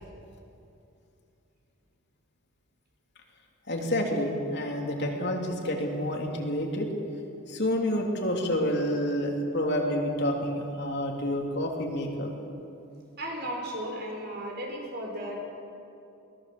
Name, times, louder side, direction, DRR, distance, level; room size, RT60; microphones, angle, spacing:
voice 1, 3.7-6.9 7.5-12.3, equal, 50° left, 1 dB, 3.1 m, -28 dB
voice 2, 13.2-15.4, equal, 50° right, 1 dB, 4.9 m, -35 dB
23.5 x 19.0 x 7.9 m, 2.8 s
head